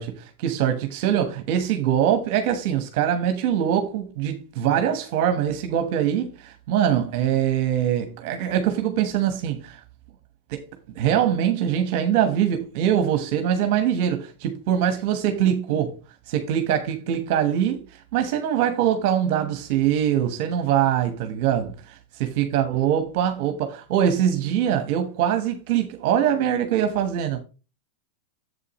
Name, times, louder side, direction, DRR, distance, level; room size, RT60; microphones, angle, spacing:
voice 1, 0.0-9.8 10.5-10.6 10.9-15.9 16.3-27.4, right 9 dB, 55° right, 1.1 m, -23 dB
8.2 x 7.7 x 3.0 m
hypercardioid pair, 115°, 0 cm